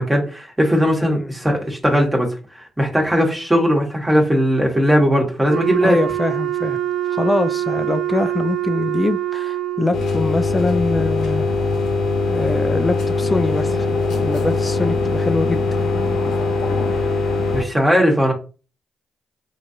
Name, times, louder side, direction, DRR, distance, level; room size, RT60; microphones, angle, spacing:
voice 1, 0.0-6.0 17.5-18.3, equal, 15° right, 1.2 m, -18 dB
voice 2, 1.0-1.3 5.8-6.8 7.1-11.5 12.3-13.9 14.2-15.6, left 2 dB, 30° left, 0.4 m, -23 dB
Wind instrument woodwind instrument, 5.5-10.1, right 12 dB, 65° right, 0.4 m, -24 dB
sound 1, 9.9-17.6, left 3 dB, 75° left, 0.7 m, -21 dB
3.1 x 2.5 x 2.7 m
hypercardioid pair, 45°, 0 cm